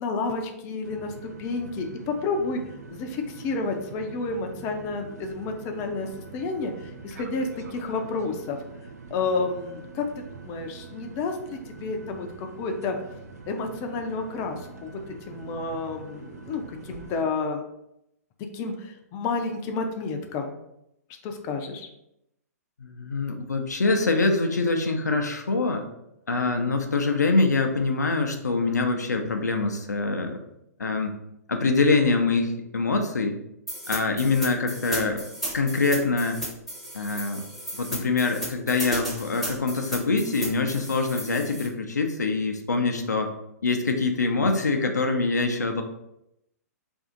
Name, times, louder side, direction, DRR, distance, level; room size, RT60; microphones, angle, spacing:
voice 1, 0.0-2.6 2.9-8.6 9.1-10.1 10.4-13.0 13.5-17.6 18.5-20.5 21.2-21.9, left 3 dB, 30° left, 4 dB, 0.4 m, -30 dB
sound 1, 0.8-17.3, right 4 dB, 70° right, 0.3 m, -44 dB
voice 2, 22.8-25.8 26.3-30.4 30.8-31.1 31.5-33.4 33.9-35.2 35.5-36.4 36.9-37.4 37.8-43.3 43.6-45.8, left 3 dB, 90° left, 4 dB, 0.4 m, -24 dB
sound 2, 33.7-41.7, equal, ahead, 0.8 m, -34 dB
2.6 x 2.4 x 3.8 m, 0.82 s
hypercardioid pair, 120°, 9 cm